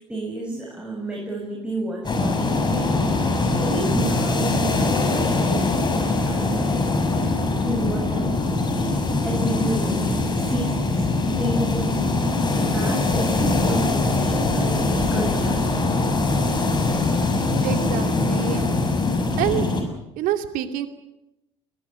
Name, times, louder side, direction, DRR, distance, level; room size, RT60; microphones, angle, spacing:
voice 1, 0.1-2.8 3.3-6.9 7.6-8.6 9.2-15.6, right 2 dB, 5° right, -2 dB, 7.3 m, -31 dB
sound 1, 2.0-19.8, left 2 dB, 25° left, 6.5 m, -22 dB
voice 2, 17.6-18.6 19.4-19.7 20.2-20.9, right 11 dB, 60° right, 7 dB, 2.5 m, -26 dB
22.0 x 20.5 x 8.4 m, 0.91 s
hypercardioid pair, 65°, 16 cm